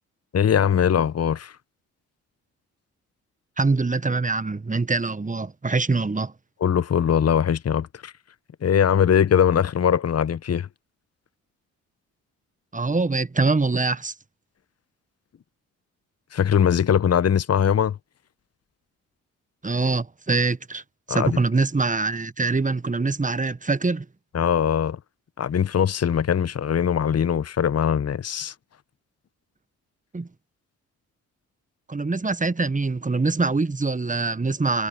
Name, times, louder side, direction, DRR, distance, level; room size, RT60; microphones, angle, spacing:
voice 1, 0.3-1.5 6.6-8.1 8.6-10.7 16.3-18.0 21.1-21.4 24.3-25.0 25.4-28.5, left 8 dB, 40° left, 1.0 m, -21 dB
voice 2, 3.6-6.3 12.7-14.1 19.6-20.8 21.1-24.0 30.1-30.3 31.9-34.9, right 3 dB, 20° right, 1.4 m, -24 dB
hypercardioid pair, 40°, 38 cm